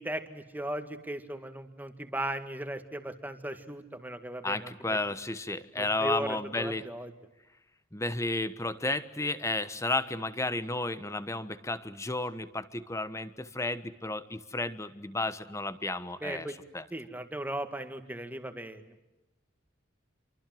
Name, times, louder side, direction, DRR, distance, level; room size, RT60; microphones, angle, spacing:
voice 1, 0.0-5.0 5.8-7.1 16.2-16.5 16.9-19.0, right 1 dB, 10° right, 7 dB, 2.0 m, -37 dB
voice 2, 4.4-6.9 7.9-16.5 16.7-16.8, left 2 dB, 15° left, 13 dB, 1.2 m, -32 dB
28.0 x 24.5 x 7.8 m, 0.99 s
head